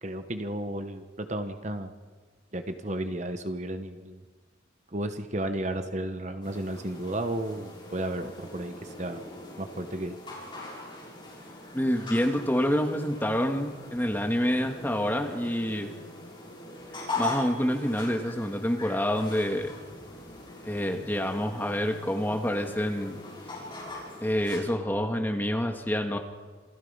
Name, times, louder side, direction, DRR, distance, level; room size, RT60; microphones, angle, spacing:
voice 1, 0.0-1.9 2.5-4.2 4.9-9.3 9.6-10.2, right 1 dB, 35° right, 8 dB, 1.1 m, -33 dB
sound 1, 6.4-24.6, left 2 dB, 25° left, 6.8 m, -41 dB
voice 2, 11.7-15.9 17.2-19.8 20.7-23.2 24.2-26.2, equal, 10° left, 4 dB, 1.6 m, -27 dB
27.5 x 17.0 x 5.6 m, 1.5 s
head